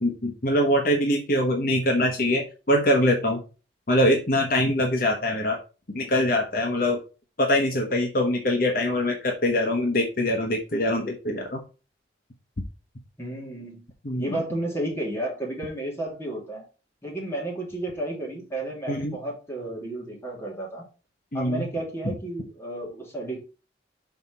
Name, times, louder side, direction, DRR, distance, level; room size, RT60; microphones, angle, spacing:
voice 1, 0.0-3.4 3.9-5.6 5.9-7.0 7.4-11.6 14.0-14.4 18.9-19.2 21.3-21.7 22.0-22.1, left 1 dB, 50° left, 2 dB, 1.1 m, -23 dB
voice 2, 13.2-13.8 14.2-16.7 17.0-20.8 21.3-23.4, right 1 dB, 15° left, -3 dB, 2.6 m, -32 dB
5.8 x 4.2 x 5.7 m, 0.34 s
head